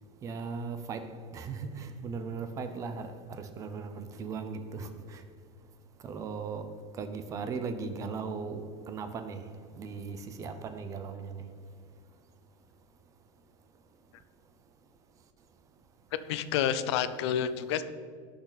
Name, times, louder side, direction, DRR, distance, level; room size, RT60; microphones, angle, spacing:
voice 1, 0.2-5.2 6.0-6.7 7.0-9.5 9.7-11.4, right 5 dB, 20° right, 0.7 m, -38 dB
voice 2, 16.3-17.8, left 9 dB, 60° left, 0.7 m, -29 dB
18.0 x 6.5 x 4.2 m
supercardioid pair, 175°, 16 cm